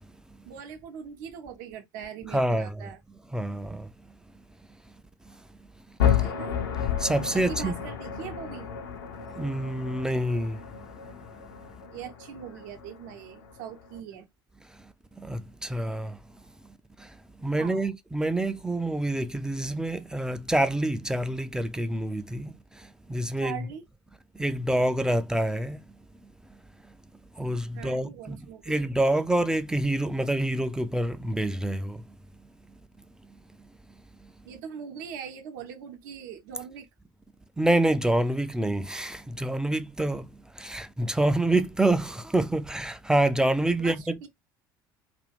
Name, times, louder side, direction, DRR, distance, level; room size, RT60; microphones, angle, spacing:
voice 1, 0.4-3.0 6.2-6.6 7.3-8.7 11.9-14.3 17.6-17.9 23.4-23.9 27.7-28.9 34.4-36.9 43.8-44.3, right 8 dB, 65° right, 0.7 m, -41 dB
voice 2, 2.3-2.8 3.3-3.9 7.0-7.7 9.4-10.6 15.2-16.2 17.4-22.5 23.1-23.7 24.4-25.8 27.4-32.0 37.6-40.3 40.6-44.2, right 1 dB, 5° right, 0.3 m, -27 dB
sound 1, 6.0-14.0, left 9 dB, 70° left, 0.6 m, -31 dB
2.5 x 2.3 x 3.4 m
figure-of-eight pair, 65°, 11 cm